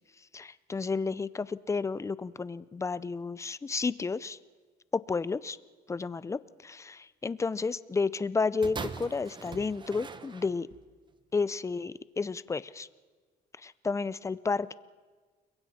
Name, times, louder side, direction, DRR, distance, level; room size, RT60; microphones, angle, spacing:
voice 1, 0.3-4.4 4.9-5.6 5.9-10.7 11.3-12.9 13.6-14.7, left 4 dB, 15° left, 17 dB, 0.5 m, -31 dB
sound 1, 8.6-10.9 11.7-11.8, right 4 dB, 25° right, 1.1 m, -41 dB
29.5 x 22.5 x 4.3 m, 1.4 s
cardioid pair, 110°, 17 cm